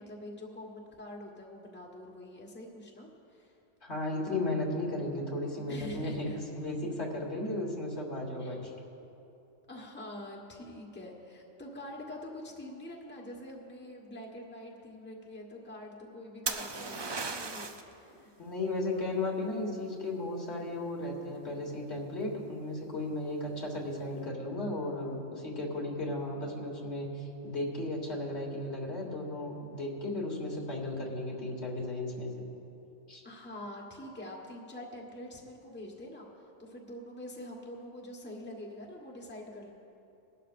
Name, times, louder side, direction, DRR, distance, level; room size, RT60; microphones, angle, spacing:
voice 1, 0.0-3.6 5.7-6.4 8.4-8.5 9.7-18.3 33.2-36.3 36.6-39.7, left 1 dB, 10° left, -2 dB, 1.2 m, -45 dB
voice 2, 3.8-8.7 18.4-32.4 33.1-33.2, left 2 dB, 65° left, -1 dB, 2.0 m, -35 dB
sound 1, 16.5-17.9 21.6-22.0, right 4 dB, 40° right, 0.3 m, -36 dB
20.5 x 12.0 x 2.5 m, 2.8 s
omnidirectional pair, 1.2 m